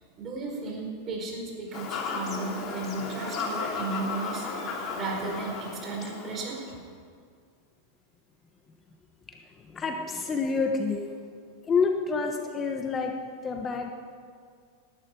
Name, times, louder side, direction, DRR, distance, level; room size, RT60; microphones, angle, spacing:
voice 1, 0.2-4.5 4.9-6.8, right 3 dB, 35° right, 0 dB, 4.7 m, -34 dB
Fowl / Bird vocalization bird call bird song, 1.7-6.7, left 4 dB, 40° left, 2.7 m, -35 dB
voice 2, 9.3-11.1 11.7-13.9, left 4 dB, 25° left, 4 dB, 1.2 m, -28 dB
19.0 x 12.0 x 4.8 m, 2.1 s
hypercardioid pair, 100°, 0 cm